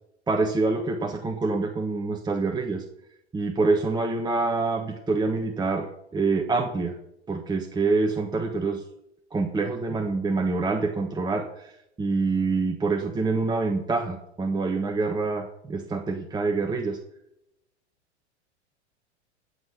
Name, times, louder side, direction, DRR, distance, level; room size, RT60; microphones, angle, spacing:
voice 1, 0.3-2.8 3.3-7.0 7.3-8.8 9.3-11.7 12.0-17.0, right 3 dB, 10° right, 4 dB, 1.2 m, -26 dB
15.5 x 5.8 x 8.2 m, 0.80 s
hypercardioid pair, 100°, 35 cm